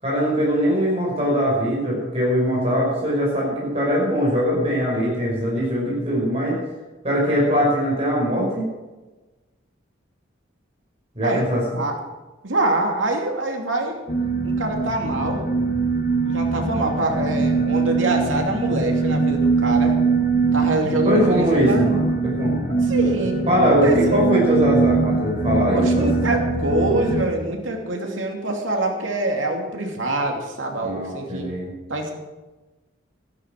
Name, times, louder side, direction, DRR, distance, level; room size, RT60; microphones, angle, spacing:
voice 1, 0.0-6.6 7.0-8.7 11.1-11.8 21.0-22.6 23.5-26.3 30.8-31.7, equal, 30° right, -5 dB, 5.5 m, -21 dB
voice 2, 12.4-14.0 14.4-15.4 16.2-19.9 20.5-21.9 22.8-23.5 23.8-24.3 25.7-31.5 31.9-32.1, right 2 dB, 90° right, 2 dB, 2.8 m, -25 dB
sound 1, 14.1-27.3, right 4 dB, 45° left, 1.3 m, -22 dB
13.5 x 12.0 x 6.2 m, 1.2 s
head